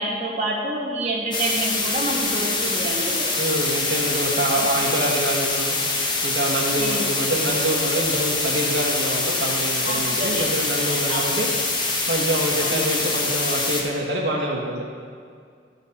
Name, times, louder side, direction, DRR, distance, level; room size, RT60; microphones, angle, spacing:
voice 1, 0.0-3.3 4.6-4.7 6.8-7.1 9.8-10.4 10.7-11.2 12.6-12.9, right 1 dB, 40° right, -4 dB, 1.4 m, -28 dB
sound 1, 1.3-13.8, left 3 dB, 25° left, 1.0 m, -24 dB
voice 2, 3.4-5.8 6.2-11.5 12.1-14.8, right 1 dB, 85° right, -2 dB, 1.4 m, -25 dB
11.5 x 4.1 x 7.1 m, 2.2 s
head